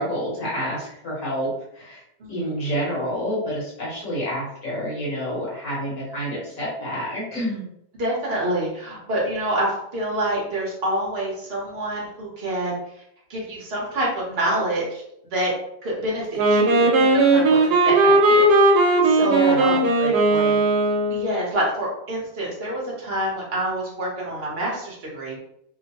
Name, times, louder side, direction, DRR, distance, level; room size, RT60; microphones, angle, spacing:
voice 1, 0.0-2.0 2.3-7.7 19.2-20.5, equal, 60° left, -6 dB, 1.2 m, -28 dB
voice 2, 8.0-12.8 13.3-15.0 15.3-15.5 15.8-19.8 21.1-25.4, right 1 dB, 45° right, -4 dB, 0.9 m, -27 dB
Wind instrument woodwind instrument, 16.4-21.4, right 2 dB, 80° right, 1.1 m, -17 dB
3.0 x 2.0 x 2.8 m, 0.75 s
omnidirectional pair, 1.7 m